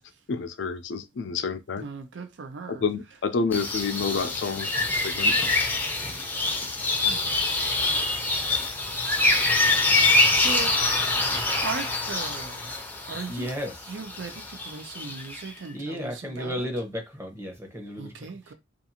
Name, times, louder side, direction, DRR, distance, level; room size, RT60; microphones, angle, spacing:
voice 1, 0.3-1.8 2.7-4.7 5.0-5.3, left 5 dB, 70° left, 0.4 m, -29 dB
voice 2, 1.8-2.8 6.1-6.3 7.0-7.2 10.3-10.8 11.6-12.7 13.1-13.5 13.9-16.7 18.0-18.5, right 5 dB, 75° right, 0.5 m, -37 dB
sound 1, 3.5-15.5, left 2 dB, 10° left, 0.5 m, -25 dB
voice 3, 13.3-13.7 15.7-18.1, equal, 15° right, 0.8 m, -33 dB
2.5 x 2.4 x 2.8 m
head